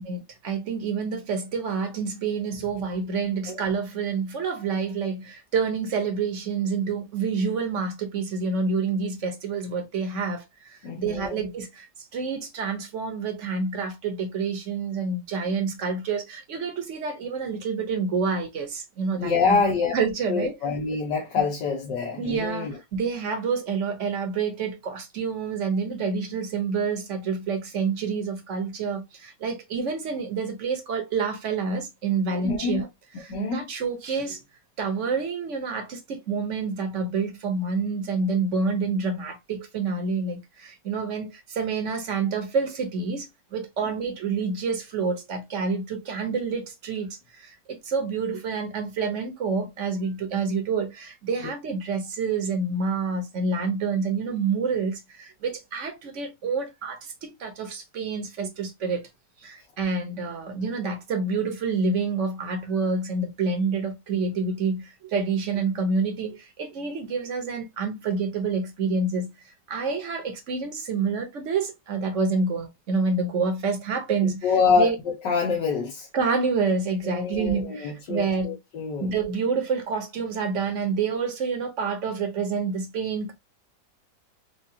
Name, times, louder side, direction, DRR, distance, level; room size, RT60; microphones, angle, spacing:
voice 1, 0.0-11.8 12.1-19.6 19.9-20.6 21.4-21.5 22.2-32.9 33.2-34.4 34.8-59.0 59.4-75.0 76.1-78.5 79.0-83.3, right 4 dB, 50° right, 1.2 m, -28 dB
voice 2, 10.8-11.4 19.2-19.9 20.3-22.8 32.3-32.8 33.1-33.7 74.2-76.1 77.0-79.1, left 5 dB, 80° left, 1.6 m, -26 dB
4.8 x 2.4 x 2.7 m
omnidirectional pair, 1.9 m